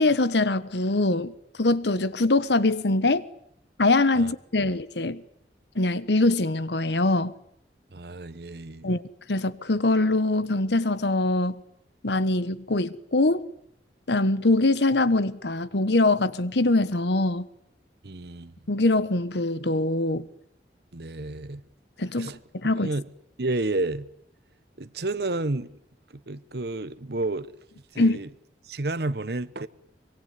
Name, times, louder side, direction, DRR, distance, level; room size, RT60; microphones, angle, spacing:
voice 1, 0.0-1.3 1.6-3.2 3.8-5.2 5.7-7.3 8.8-9.0 9.3-11.6 12.0-13.4 14.1-17.5 18.7-20.3 22.0-22.9 28.0-28.2, left 2 dB, 75° left, 1.2 m, -23 dB
voice 2, 7.9-9.0 18.0-18.5 20.9-21.6 22.2-22.4 22.8-23.0 23.4-24.1 24.8-25.8 26.1-27.5 27.9-28.3 28.6-29.7, right 2 dB, 60° right, 1.0 m, -31 dB
24.0 x 23.0 x 9.6 m
head